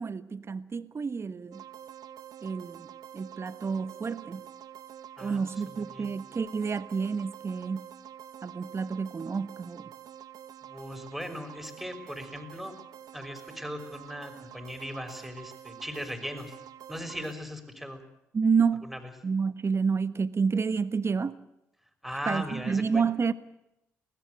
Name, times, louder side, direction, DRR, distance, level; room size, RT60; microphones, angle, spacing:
voice 1, 0.0-1.6 2.4-4.4 5.2-7.9 8.4-9.8 18.3-18.9 19.2-21.4 22.3-23.3, right 5 dB, 35° right, 14 dB, 1.3 m, -29 dB
sound 1, 1.5-17.3, right 10 dB, 60° right, 1.1 m, -47 dB
voice 2, 5.7-6.1 10.7-12.7 13.1-16.6 16.9-18.0 18.9-19.0 22.0-23.0, equal, ahead, 6 dB, 5.9 m, -38 dB
22.0 x 19.5 x 8.2 m, 0.86 s
hypercardioid pair, 45°, 8 cm